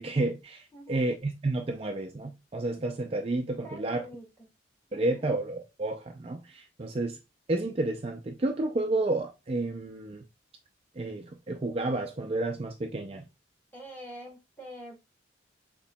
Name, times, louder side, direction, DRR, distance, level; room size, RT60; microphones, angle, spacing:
voice 1, 0.0-4.0 4.9-7.2 7.5-10.2 11.0-13.2, right 2 dB, 30° right, 0.4 m, -31 dB
voice 2, 0.7-1.0 3.6-4.3 4.9-5.3 13.7-15.0, right 1 dB, 10° left, 2.0 m, -45 dB
6.7 x 3.0 x 2.2 m
head